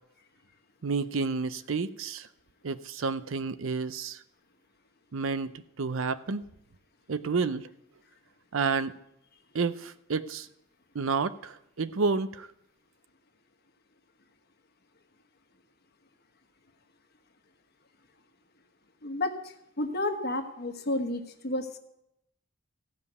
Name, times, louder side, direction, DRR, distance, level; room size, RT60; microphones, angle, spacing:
voice 1, 0.8-2.3 2.6-4.2 5.1-6.4 7.1-7.7 8.5-9.0 9.5-10.5 10.9-12.5, right 4 dB, 70° right, 14 dB, 0.6 m, -30 dB
voice 2, 19.0-21.8, left 1 dB, 50° left, 5 dB, 1.3 m, -31 dB
15.5 x 5.4 x 8.1 m, 0.81 s
head